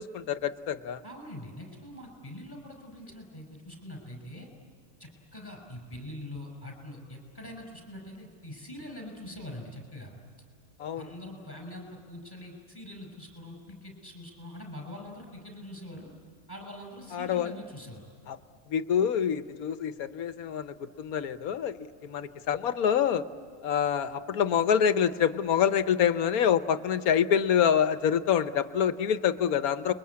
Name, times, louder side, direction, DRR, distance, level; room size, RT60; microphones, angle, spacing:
voice 1, 0.0-1.0 10.8-11.0 17.1-17.5 18.3-18.4 18.7-23.2 23.6-29.9, left 8 dB, 80° left, 12 dB, 1.4 m, -26 dB
voice 2, 1.0-4.5 5.0-10.1 11.0-16.1 16.5-18.0, left 1 dB, 15° left, 2 dB, 6.1 m, -43 dB
30.0 x 22.5 x 8.6 m, 2.4 s
omnidirectional pair, 1.5 m